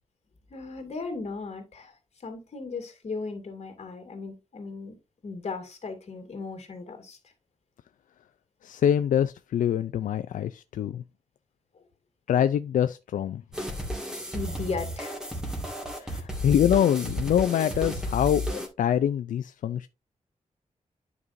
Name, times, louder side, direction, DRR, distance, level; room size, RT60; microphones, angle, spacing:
voice 1, 0.5-1.9 2.2-5.0 5.2-7.2 11.7-11.9 14.3-15.2 16.0-16.3, left 4 dB, 55° left, 2.3 m, -36 dB
voice 2, 8.6-11.0 12.3-13.4 16.0-19.9, left 10 dB, 85° left, 0.4 m, -25 dB
sound 1, 13.5-18.7, equal, 5° right, 1.9 m, -33 dB
9.7 x 5.3 x 2.6 m
wide cardioid pair, 105°, 13 cm